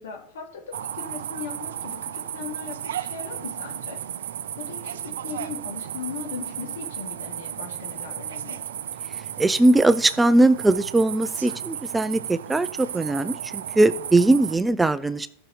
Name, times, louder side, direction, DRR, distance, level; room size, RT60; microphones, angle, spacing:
voice 1, 0.0-4.0 4.6-8.6, left 6 dB, 85° left, 1 dB, 2.5 m, -38 dB
sound 1, 0.7-14.6, right 10 dB, 90° right, 0.4 m, -34 dB
voice 2, 9.4-15.3, right 2 dB, 10° right, 15 dB, 0.4 m, -20 dB
14.5 x 6.1 x 3.2 m, 0.73 s
supercardioid pair, 135°, 0 cm